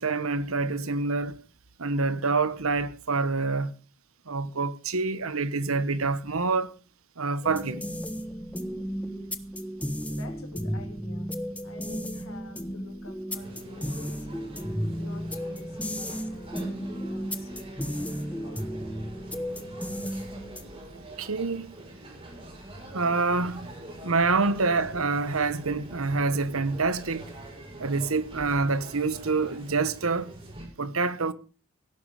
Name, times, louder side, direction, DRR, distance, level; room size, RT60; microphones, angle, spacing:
voice 1, 0.0-1.4 1.8-3.7 4.3-6.7 7.2-7.9 21.2-21.7 22.9-23.7 24.0-27.3 27.8-30.3 30.8-31.3, right 3 dB, 85° right, 1.3 m, -26 dB
sound 1, 7.4-20.9, equal, 5° left, 1.2 m, -34 dB
voice 2, 10.0-11.3 11.6-14.5 15.0-18.1 18.4-18.6, left 2 dB, 70° left, 3.0 m, -49 dB
sound 2, 13.3-30.6, right 1 dB, 30° right, 7.3 m, -45 dB
17.0 x 11.5 x 5.0 m
head